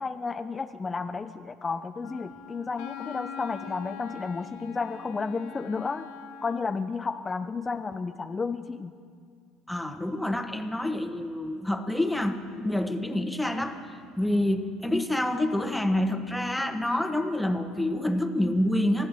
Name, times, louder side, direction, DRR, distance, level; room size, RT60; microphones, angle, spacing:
voice 1, 0.0-6.1 6.4-8.9, left 4 dB, 25° left, 7 dB, 0.5 m, -32 dB
Wind instrument woodwind instrument, 2.0-6.8, left 8 dB, 80° left, 1.2 m, -43 dB
voice 2, 9.7-13.9 14.2-19.1, left 1 dB, 5° left, 6 dB, 1.2 m, -27 dB
24.5 x 15.0 x 3.6 m, 2.2 s
supercardioid pair, 80°, 0 cm